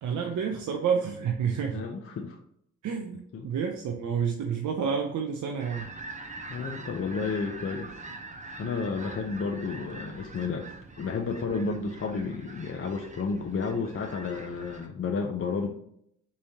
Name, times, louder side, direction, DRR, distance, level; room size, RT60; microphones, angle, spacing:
voice 1, 0.0-1.8 2.8-5.9, right 6 dB, 70° right, 3 dB, 0.6 m, -29 dB
voice 2, 1.7-2.4 3.3-3.5 6.5-7.9 8.6-15.7, left 4 dB, 45° left, 2 dB, 0.7 m, -32 dB
sound 1, 5.6-14.9, right 3 dB, 25° right, 0.8 m, -44 dB
5.5 x 3.2 x 2.8 m, 0.71 s
supercardioid pair, 50°, 31 cm